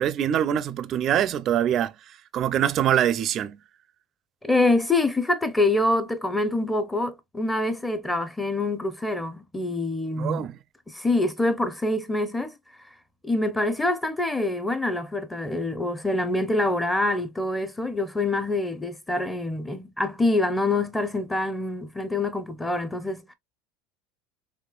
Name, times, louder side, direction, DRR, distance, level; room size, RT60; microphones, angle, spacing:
voice 1, 0.0-1.9 2.3-3.6 10.2-10.6, right 10 dB, 40° right, 0.4 m, -24 dB
voice 2, 4.4-10.5 10.9-12.6 13.2-23.3, left 2 dB, 5° left, 0.6 m, -25 dB
4.2 x 2.9 x 2.3 m
supercardioid pair, 130°, 0 cm